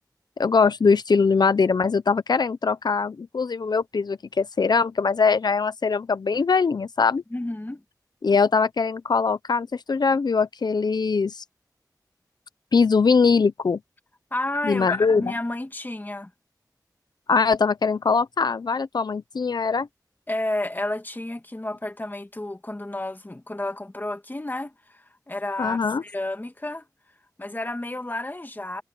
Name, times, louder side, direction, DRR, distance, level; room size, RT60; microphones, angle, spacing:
voice 1, 0.4-7.2 8.2-11.4 12.7-13.8 14.6-15.3 17.3-19.9 25.6-26.0, left 5 dB, 75° left, 0.7 m, -22 dB
voice 2, 7.3-7.8 14.3-16.3 20.3-26.9 27.4-28.8, left 1 dB, 25° left, 2.0 m, -31 dB
wide cardioid pair, 65°, 7 cm